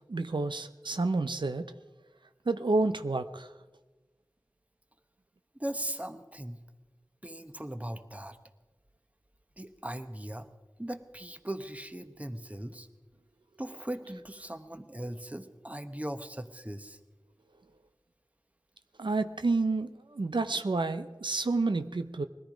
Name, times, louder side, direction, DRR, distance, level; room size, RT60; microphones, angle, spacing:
voice 1, 0.1-1.7 2.5-3.5 19.0-22.3, right 3 dB, 90° right, 9 dB, 0.6 m, -29 dB
voice 2, 5.6-6.6 7.2-8.4 9.6-10.5 10.8-12.9 13.6-17.0, right 1 dB, 20° right, 9 dB, 1.0 m, -39 dB
20.5 x 13.5 x 5.1 m, 1.2 s
wide cardioid pair, 45°, 8 cm